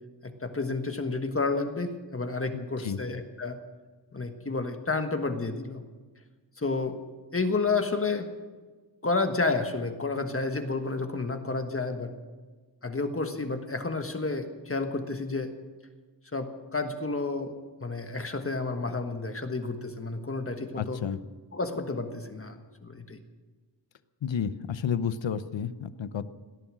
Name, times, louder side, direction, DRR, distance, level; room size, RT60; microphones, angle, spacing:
voice 1, 0.2-3.6 4.1-5.8 6.6-7.0 7.3-8.3 9.0-12.1 12.8-15.5 16.3-17.5 17.8-21.0 21.5-23.2, left 3 dB, 30° left, 6 dB, 1.4 m, -30 dB
voice 2, 2.5-3.0 20.8-21.2 24.2-26.2, left 7 dB, 90° left, 13 dB, 0.9 m, -31 dB
18.0 x 13.0 x 6.2 m, 1.4 s
wide cardioid pair, 130°, 44 cm